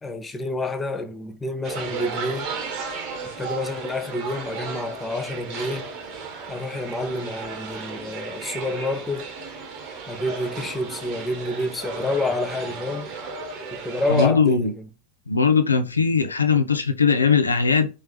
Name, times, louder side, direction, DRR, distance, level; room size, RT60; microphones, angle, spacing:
voice 1, 0.0-2.5 3.4-5.9 6.5-9.3 10.1-13.1 13.7-14.8, left 2 dB, 10° left, 0.6 m, -28 dB
sound 1, 1.6-14.3, right 4 dB, 40° right, 1.0 m, -34 dB
voice 2, 14.1-14.7 15.3-17.9, left 5 dB, 75° left, 0.5 m, -19 dB
3.5 x 3.2 x 3.4 m
figure-of-eight pair, 90°, 0 cm